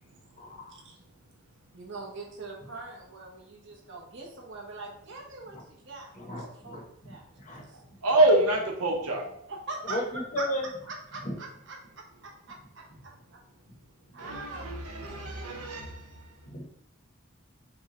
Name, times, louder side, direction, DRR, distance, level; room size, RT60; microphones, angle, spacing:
voice 1, 0.4-0.8 5.5-5.6 6.1-7.6 9.8-10.6 11.2-11.4 16.5-16.6, equal, 35° left, -1 dB, 0.8 m, -35 dB
voice 2, 1.7-7.8 9.5-10.0 10.4-10.5 10.9-11.8 12.2-12.8 13.3-13.4 14.1-15.3, right 3 dB, 55° right, -2 dB, 0.9 m, -42 dB
voice 3, 8.0-9.3 14.2-16.0, right 2 dB, 90° right, 1 dB, 0.8 m, -25 dB
5.3 x 2.2 x 2.9 m, 0.72 s
head